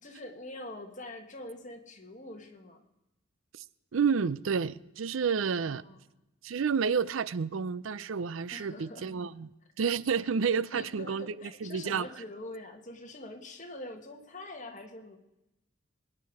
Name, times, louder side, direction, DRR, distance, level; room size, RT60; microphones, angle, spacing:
voice 1, 0.0-2.8 5.4-6.0 8.5-9.1 10.7-15.2, left 2 dB, 40° left, 1.8 m, -44 dB
voice 2, 3.9-5.8 6.4-9.5 9.8-12.1, right 6 dB, 90° right, 0.5 m, -30 dB
22.0 x 9.9 x 4.8 m
head